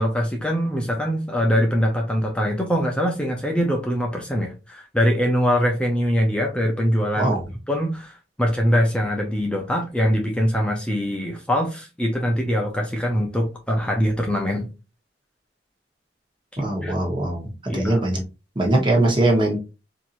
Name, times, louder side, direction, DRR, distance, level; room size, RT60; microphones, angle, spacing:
voice 1, 0.0-7.3 7.7-8.1 8.4-14.7 16.6-16.9 17.7-18.0, equal, 5° left, 1 dB, 0.5 m, -23 dB
voice 2, 16.6-18.2 18.5-19.6, right 1 dB, 25° right, 0 dB, 1.2 m, -21 dB
4.4 x 2.7 x 2.5 m, 0.30 s
head